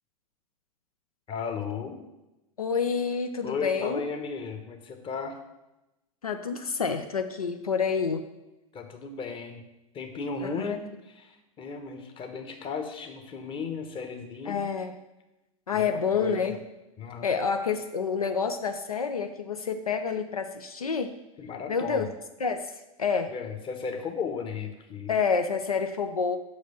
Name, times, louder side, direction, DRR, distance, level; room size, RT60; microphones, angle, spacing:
voice 1, 1.3-2.0 3.4-5.4 8.7-9.6 9.9-14.7 15.7-16.6 17.0-17.3 21.4-22.1 23.3-25.2, left 5 dB, 30° left, 6 dB, 1.2 m, -35 dB
voice 2, 2.6-4.0 6.2-8.2 10.4-10.8 14.5-14.9 15.7-16.6 17.2-21.1 21.7-22.1 22.4-22.7 23.0-23.3 25.1-26.4, left 5 dB, 85° left, 7 dB, 0.5 m, -28 dB
6.2 x 5.0 x 6.8 m, 0.97 s
figure-of-eight pair, 90°, 18 cm